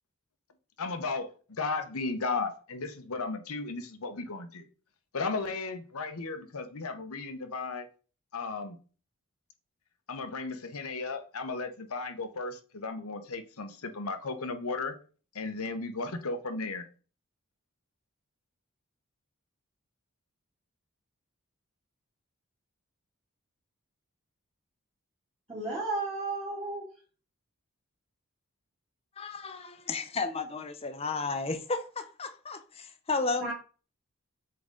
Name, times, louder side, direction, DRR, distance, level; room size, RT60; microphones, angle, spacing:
voice 1, 0.8-4.6 5.1-7.9 8.3-8.8 10.1-14.9 15.3-16.9, left 3 dB, 85° left, 1.0 m, -35 dB
voice 2, 25.5-26.8 33.4-33.5, right 3 dB, 25° right, 2.1 m, -33 dB
voice 3, 29.2-33.5, left 4 dB, 25° left, 0.6 m, -33 dB
7.9 x 3.8 x 3.7 m
head